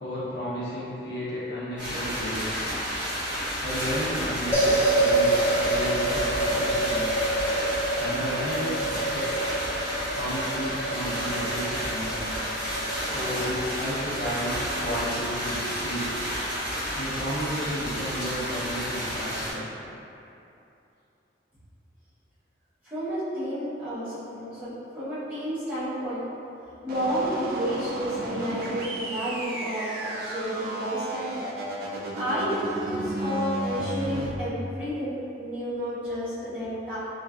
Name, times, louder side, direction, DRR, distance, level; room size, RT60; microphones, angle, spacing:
voice 1, 0.0-2.5 3.6-7.1 7.4-7.5 8.0-9.3 10.1-12.4 13.0-16.1 16.9-19.7, equal, 60° left, -9 dB, 0.7 m, -33 dB
sound 1, 1.8-19.5, equal, 30° right, 1.2 m, -31 dB
sound 2, 4.5-15.0, right 2 dB, 15° left, 0.6 m, -28 dB
voice 2, 22.8-26.3 26.8-31.4 32.2-37.0, equal, 10° right, -15 dB, 0.9 m, -31 dB
sound 3, 26.9-34.3, right 1 dB, 50° right, 0.3 m, -33 dB
3.1 x 2.3 x 2.4 m, 2.8 s
head